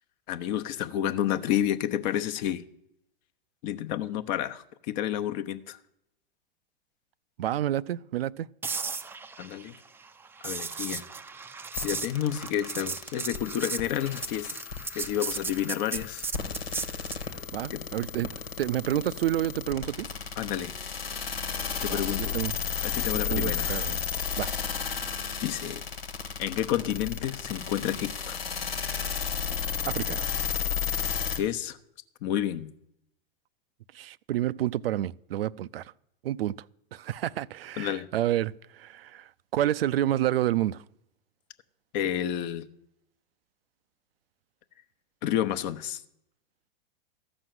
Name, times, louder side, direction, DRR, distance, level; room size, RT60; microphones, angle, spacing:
voice 1, 0.3-2.6 3.6-5.8 9.4-9.8 10.4-11.0 11.8-14.5 14.9-16.3 17.7-17.8 20.4-20.7 21.8-22.4 22.8-23.8 25.4-25.8 26.4-28.4 31.4-31.8 32.2-32.7 37.8-38.1 41.9-42.7 45.2-46.0, left 11 dB, 50° left, 0.9 m, -30 dB
voice 2, 7.4-8.5 17.5-18.3 18.6-20.1 21.9-22.0 22.3-22.5 23.3-24.0 24.4-24.5 29.9-30.4 33.9-35.9 36.2-36.6 36.9-40.8, right 13 dB, 85° right, 0.5 m, -29 dB
sound 1, 8.6-17.3 21.5-21.7, right 4 dB, 10° right, 0.4 m, -36 dB
sound 2, 11.7-31.4, left 7 dB, 90° left, 1.6 m, -33 dB
13.5 x 6.2 x 7.7 m
hypercardioid pair, 110°, 29 cm